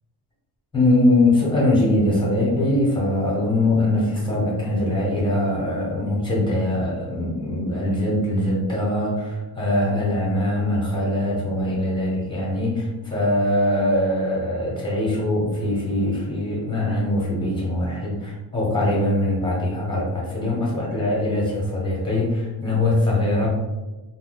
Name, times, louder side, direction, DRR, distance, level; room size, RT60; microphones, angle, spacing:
voice 1, 0.7-23.5, left 1 dB, 10° left, -5 dB, 0.8 m, -22 dB
2.7 x 2.0 x 3.9 m, 1.1 s
cardioid pair, 170°, 42 cm